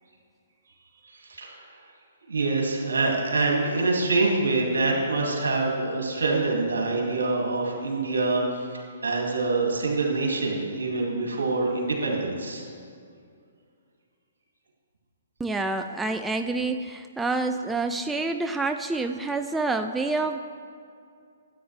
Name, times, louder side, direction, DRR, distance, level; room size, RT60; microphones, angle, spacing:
voice 1, 1.1-1.8 2.3-12.7, right 3 dB, 80° right, -1 dB, 2.2 m, -25 dB
voice 2, 15.4-20.4, right 3 dB, 5° right, 6 dB, 0.3 m, -27 dB
13.0 x 8.5 x 3.3 m, 2.3 s
hypercardioid pair, 130°, 0 cm